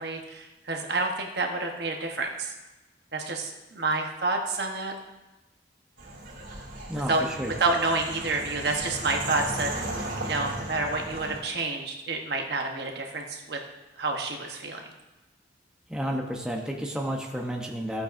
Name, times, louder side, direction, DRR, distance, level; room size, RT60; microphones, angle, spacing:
voice 1, 0.0-2.5 3.1-4.9 7.1-7.3 7.6-13.6 14.0-14.9, right 3 dB, 60° right, 2 dB, 1.1 m, -29 dB
sound 1, 6.0-11.4, right 1 dB, 85° right, 3.1 m, -36 dB
voice 2, 6.9-7.5 15.9-18.0, equal, 5° right, 0 dB, 0.8 m, -31 dB
15.0 x 8.6 x 2.6 m, 1.1 s
head